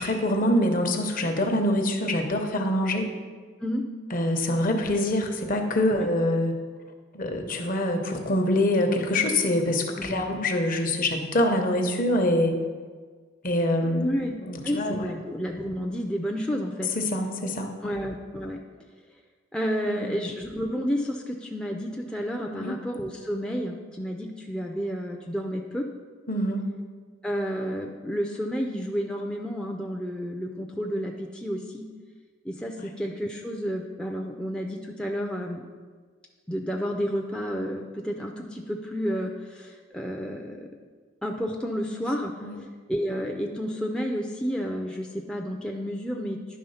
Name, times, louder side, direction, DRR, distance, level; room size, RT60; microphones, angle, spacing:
voice 1, 0.0-3.1 4.1-6.6 7.1-12.6 13.4-15.1 16.9-17.9 19.8-20.1 22.5-22.7 26.3-26.7 32.8-32.9 41.9-42.0 42.4-42.6, left 1 dB, 45° left, 4 dB, 0.9 m, -25 dB
voice 2, 10.0-10.3 14.0-14.4 14.6-16.9 17.8-18.6 19.5-25.9 27.2-31.8 32.4-35.6 36.5-40.7 41.2-42.3 42.9-46.6, equal, 5° left, 0 dB, 0.4 m, -31 dB
10.5 x 3.6 x 5.6 m, 1.5 s
head